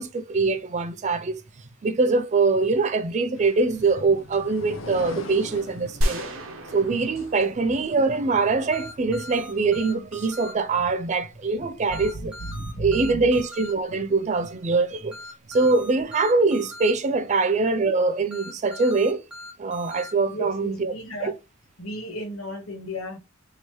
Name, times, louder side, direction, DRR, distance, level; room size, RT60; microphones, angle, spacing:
voice 1, 0.0-1.4 1.8-6.2 6.7-12.3 12.8-15.1 15.5-19.2 19.6-20.9 21.2-21.3, right 3 dB, 35° right, 0.4 m, -23 dB
sound 1, 3.4-8.0, left 2 dB, 70° left, 0.7 m, -41 dB
sound 2, 6.0-8.9, equal, 70° right, 0.8 m, -31 dB
sound 3, 8.7-10.5 11.9-13.7 15.1-16.9 18.3-20.1, left 1 dB, 5° right, 0.9 m, -41 dB
voice 2, 11.9-13.2 20.3-21.3 21.8-23.2, equal, 90° left, 1.3 m, -34 dB
3.1 x 2.8 x 4.5 m
head